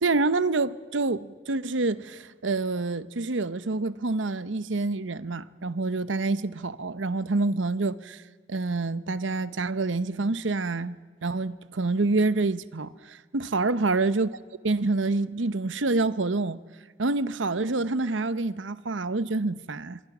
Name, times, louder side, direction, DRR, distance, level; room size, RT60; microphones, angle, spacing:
voice 1, 0.0-8.2 8.5-11.0 11.2-14.3 14.6-16.6 17.0-20.0, right 3 dB, 90° right, 0.9 m, -27 dB
26.5 x 23.5 x 6.1 m
head